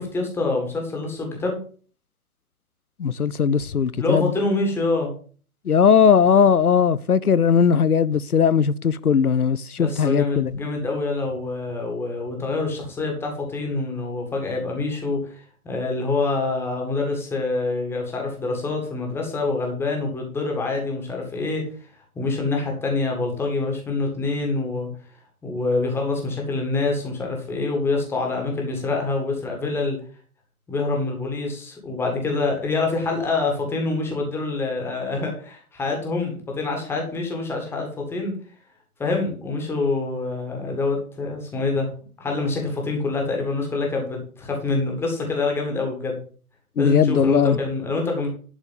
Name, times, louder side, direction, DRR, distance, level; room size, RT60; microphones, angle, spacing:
voice 1, 0.0-1.6 4.0-5.1 9.8-21.6 22.2-24.9 25.4-30.0 30.7-38.3 39.0-41.9 42.2-46.2 46.8-48.3, left 3 dB, 5° left, 1.9 m, -26 dB
voice 2, 3.0-4.3 5.7-10.5 46.8-47.6, left 7 dB, 85° left, 0.6 m, -18 dB
11.5 x 4.5 x 7.2 m
figure-of-eight pair, 135°, 44 cm